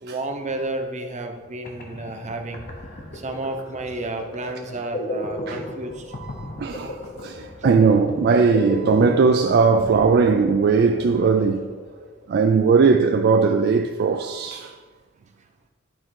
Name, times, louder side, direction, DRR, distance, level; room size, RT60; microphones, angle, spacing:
voice 1, 0.0-2.6 3.1-6.0, right 2 dB, 35° right, 0.8 m, -31 dB
sound 1, 1.4-1.5 1.6-12.3, left 1 dB, 45° left, 0.9 m, -34 dB
voice 2, 6.2-11.7 12.3-14.8, right 5 dB, 55° right, 0.4 m, -19 dB
11.0 x 3.7 x 4.6 m
head